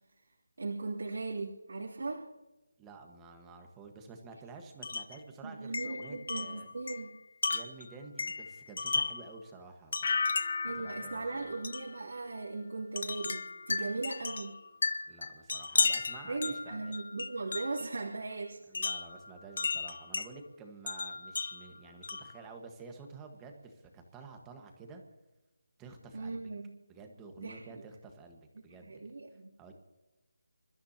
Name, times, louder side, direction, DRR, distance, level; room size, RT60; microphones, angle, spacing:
voice 1, 0.6-2.2 5.4-7.1 10.6-14.6 16.3-18.6 26.1-26.7 27.4-27.6 28.8-29.5, right 3 dB, 70° right, -4 dB, 3.1 m, -38 dB
voice 2, 2.8-6.7 7.5-10.3 10.6-11.6 15.0-16.9 18.7-25.0 25.8-26.5 26.9-29.1 29.6-29.7, right 4 dB, 10° right, 4 dB, 1.5 m, -50 dB
Wind chime, 4.8-5.2 5.7-9.3 9.9-10.7 11.6-11.9 13.0-17.9 18.7-20.3 20.9-22.4, left 4 dB, 50° left, 1.1 m, -35 dB
sound 1, 10.0-12.9 13.2-13.7, left 4 dB, 35° left, 0.6 m, -37 dB
28.0 x 13.5 x 2.9 m, 1.0 s
figure-of-eight pair, 170°, 0 cm